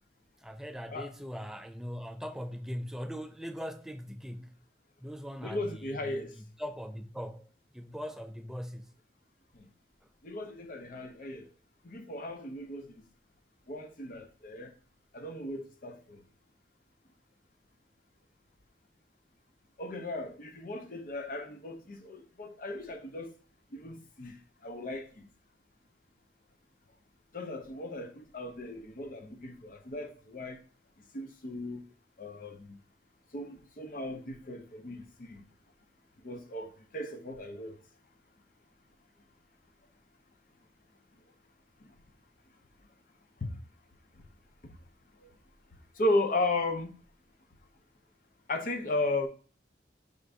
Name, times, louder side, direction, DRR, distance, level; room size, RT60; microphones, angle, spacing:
voice 1, 0.4-4.5 5.0-7.4 7.7-8.9 10.0-10.1, equal, 5° right, 0.3 m, -40 dB
voice 2, 5.4-6.3 10.2-11.5 11.8-12.9 13.7-14.7 15.1-16.2 19.8-23.3 23.7-25.3 27.3-30.6 31.1-31.8 32.2-32.8 33.3-35.4 36.2-37.8 43.4-43.6 44.6-44.8 45.2-45.3 46.0-46.9 48.5-49.3, left 2 dB, 50° left, 0.6 m, -36 dB
5.1 x 2.6 x 3.4 m
head